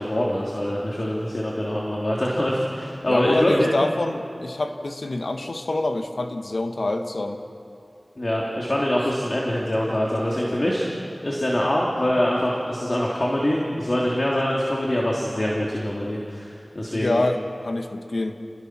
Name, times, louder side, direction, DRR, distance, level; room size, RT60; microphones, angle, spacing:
voice 1, 0.0-3.9 8.2-17.2, left 1 dB, 45° left, -4 dB, 3.2 m, -24 dB
voice 2, 3.0-7.4 16.9-18.5, left 2 dB, 75° left, 5 dB, 1.5 m, -26 dB
29.5 x 20.0 x 6.2 m, 2.7 s
wide cardioid pair, 55°, 0 cm